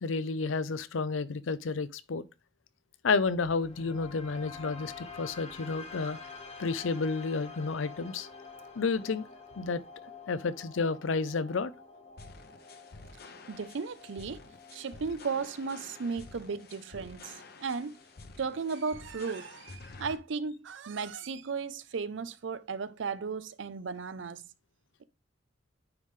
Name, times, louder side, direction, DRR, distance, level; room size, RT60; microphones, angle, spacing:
voice 1, 0.0-2.2 3.0-6.2 6.6-8.3 8.8-9.3 9.6-9.8 10.3-11.7, left 4 dB, 85° left, 0.5 m, -31 dB
sound 1, 3.0-19.0, left 4 dB, 35° left, 1.2 m, -49 dB
sound 2, 12.2-20.2, left 3 dB, 55° left, 0.7 m, -50 dB
voice 2, 13.5-14.4 14.7-18.0 18.4-24.4, right 5 dB, 70° right, 0.5 m, -35 dB
9.6 x 3.2 x 3.6 m
head